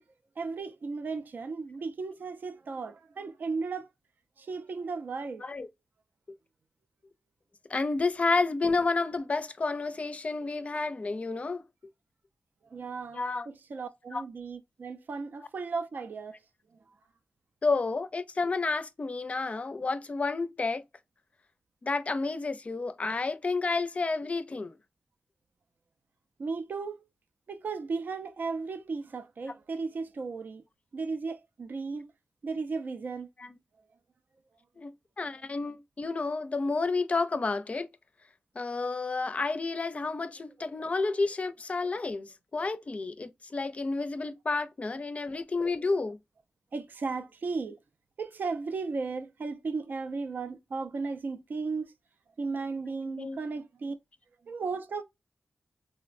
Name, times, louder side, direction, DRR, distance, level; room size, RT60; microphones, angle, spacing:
voice 1, 0.4-3.9 4.4-5.5 12.7-16.4 26.4-27.0 27.5-30.6 30.9-32.0 32.4-33.3 46.7-47.8 48.2-51.9 52.4-53.9 54.5-55.0, right 4 dB, 65° right, 0.4 m, -35 dB
voice 2, 7.7-11.6 13.1-13.5 14.1-14.2 17.6-20.8 21.8-24.7 33.4-33.6 34.8-37.9 38.6-46.2 53.0-53.4, left 3 dB, 40° left, 0.4 m, -30 dB
3.8 x 2.1 x 2.4 m
wide cardioid pair, 105°, 3 cm